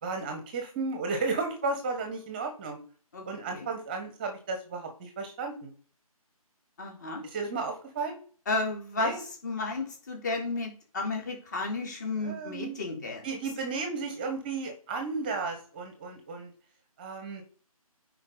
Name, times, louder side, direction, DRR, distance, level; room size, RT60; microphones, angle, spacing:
voice 1, 0.0-2.8 3.2-5.7 7.2-8.2 9.0-9.2 12.2-12.8 13.2-16.5 17.0-17.4, right 4 dB, 15° right, 4 dB, 1.2 m, -33 dB
voice 2, 3.1-3.7 6.8-7.2 8.5-13.3, left 3 dB, 30° left, 1 dB, 3.0 m, -33 dB
9.5 x 4.8 x 3.9 m, 0.42 s
figure-of-eight pair, 150°, 19 cm